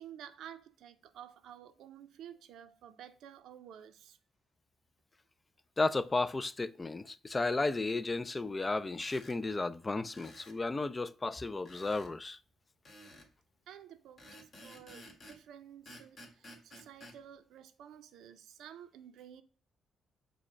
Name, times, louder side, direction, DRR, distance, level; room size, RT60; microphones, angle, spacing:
voice 1, 0.0-4.2 13.7-14.3 14.6-19.4, right 9 dB, 80° right, 0.5 m, -52 dB
voice 2, 5.8-12.4, left 3 dB, 25° left, 0.3 m, -33 dB
sound 1, 8.9-9.4 10.1-10.6 11.7-12.1 12.9-13.3 14.2-15.4 15.9-17.2, left 1 dB, 45° left, 1.6 m, -53 dB
4.7 x 2.1 x 4.5 m
cardioid pair, 90°, 0 cm